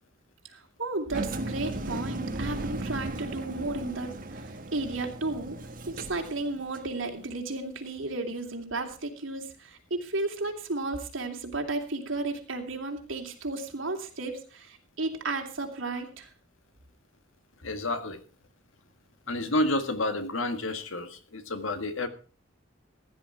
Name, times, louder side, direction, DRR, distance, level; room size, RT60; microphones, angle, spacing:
voice 1, 0.5-5.6 5.9-16.3, right 2 dB, 80° right, 3 dB, 2.9 m, -33 dB
Engine, 1.1-6.9, right 1 dB, 45° right, 1.5 m, -36 dB
voice 2, 17.6-18.2 19.3-22.1, left 2 dB, 90° left, 8 dB, 1.8 m, -30 dB
15.5 x 10.5 x 4.7 m, 0.37 s
head